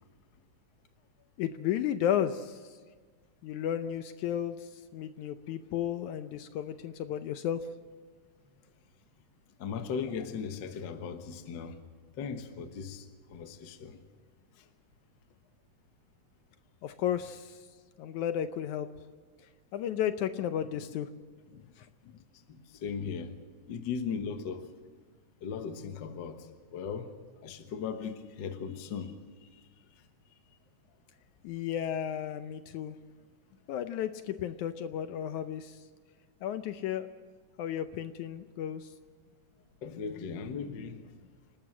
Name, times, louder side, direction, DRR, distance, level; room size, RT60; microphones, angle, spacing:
voice 1, 1.4-2.8 3.4-7.7 16.8-17.7 18.0-18.9 19.7-21.1 21.5-22.2 31.4-33.0 33.7-35.8 36.4-37.1 37.6-38.9, left 10 dB, 75° left, 2.0 m, -33 dB
voice 2, 9.6-11.8 12.1-14.0 14.6-14.7 22.5-23.4 23.7-24.7 25.4-27.1 27.4-29.7 29.9-30.1 39.8-41.3, left 6 dB, 55° left, 1.3 m, -38 dB
28.5 x 12.5 x 7.4 m
omnidirectional pair, 3.8 m